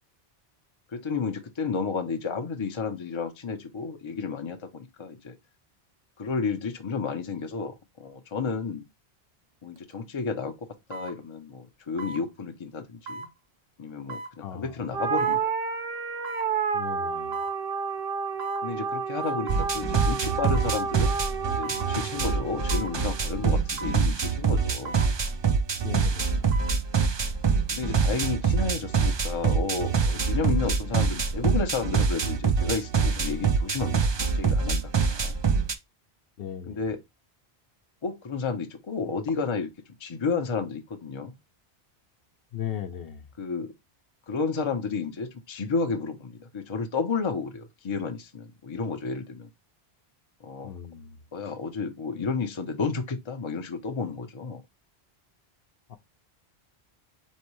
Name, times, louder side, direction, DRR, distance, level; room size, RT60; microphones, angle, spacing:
voice 1, 0.9-5.4 6.2-8.8 9.6-10.6 10.9-13.3 13.8-15.5 18.6-21.2 21.5-25.0 27.7-35.4 36.7-37.0 38.0-39.7 40.0-41.3 43.4-43.7 44.3-49.5 50.4-50.8 51.3-54.6, left 5 dB, 35° left, 0.6 m, -32 dB
sound 1, 9.8-9.9 10.9-11.2 12.0-12.2 13.1-13.3 14.1-14.3 15.2-15.4 16.2-16.5 17.3-17.6 18.4-18.7 19.5-19.7 20.5-20.8 21.6-21.9 22.7-23.0 23.8-24.1 24.9-25.1 26.3-26.8 27.2-27.3, right 3 dB, 80° right, 1.3 m, -38 dB
voice 2, 14.4-15.1 16.7-17.4 25.8-26.5 36.4-36.9 42.5-43.3 50.6-51.2 55.9-56.0, left 10 dB, 65° left, 0.8 m, -37 dB
sound 2, 14.9-23.5, right 5 dB, 65° right, 1.0 m, -30 dB
sound 3, 19.5-35.7, right 5 dB, 45° right, 0.3 m, -25 dB
4.4 x 3.2 x 3.0 m
omnidirectional pair, 1.1 m